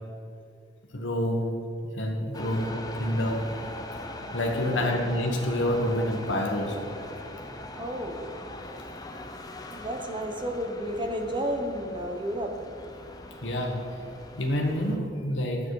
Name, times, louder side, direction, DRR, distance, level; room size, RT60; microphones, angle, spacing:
voice 1, 0.9-1.5 2.0-2.7 3.0-3.5 4.3-6.9 13.4-13.8 14.4-15.6, left 1 dB, 85° left, 0 dB, 1.3 m, -27 dB
sound 1, 2.3-15.0, left 1 dB, 20° left, 0.7 m, -41 dB
voice 2, 2.4-2.7 4.6-5.0 7.7-8.3 9.7-12.6, equal, 25° right, 4 dB, 1.0 m, -32 dB
10.5 x 8.3 x 4.8 m, 2.4 s
head